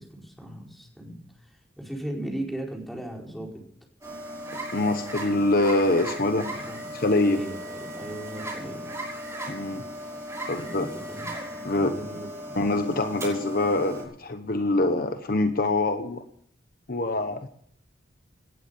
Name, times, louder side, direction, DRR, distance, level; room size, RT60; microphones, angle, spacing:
voice 1, 0.0-3.5 6.5-6.8 7.2-8.9 10.6-11.3 11.7-12.6, right 1 dB, ahead, -1 dB, 4.7 m, -37 dB
sound 1, 4.0-14.0, right 1 dB, 15° right, 6.2 m, -37 dB
voice 2, 4.7-6.5 6.9-7.4 9.5-9.8 10.5-10.9 11.6-11.9 12.5-16.2 16.9-17.5, left 2 dB, 55° left, 8 dB, 1.2 m, -24 dB
19.0 x 10.5 x 6.9 m, 0.63 s
head